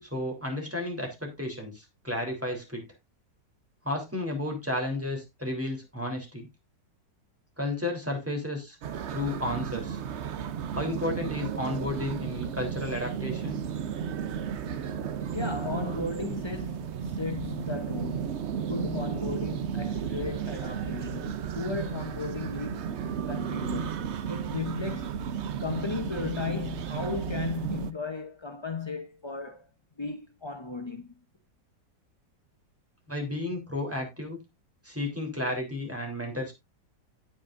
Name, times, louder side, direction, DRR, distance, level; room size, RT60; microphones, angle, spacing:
voice 1, 0.0-2.8 3.8-6.5 7.6-8.8 9.1-10.0 10.7-13.6 33.1-34.4 34.8-36.5, left 1 dB, 5° right, 3.4 m, -32 dB
sound 1, 8.8-27.9, right 8 dB, 60° right, 0.7 m, -34 dB
voice 2, 15.3-24.0 24.3-25.3 25.6-29.7 30.0-31.1, left 4 dB, 40° left, 0.4 m, -35 dB
16.5 x 6.0 x 2.5 m
omnidirectional pair, 1.9 m